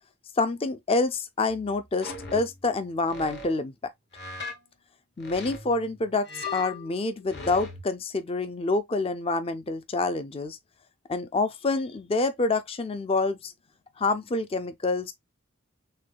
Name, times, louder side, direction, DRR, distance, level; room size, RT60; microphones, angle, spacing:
voice 1, 0.4-3.7 5.2-10.6 11.1-13.5 14.0-15.1, left 3 dB, 25° left, 0.4 m, -27 dB
sound 1, 1.5-2.7 3.1-3.5 4.1-4.6 5.2-7.8, left 3 dB, 50° left, 1.5 m, -39 dB
6.4 x 2.2 x 2.3 m
head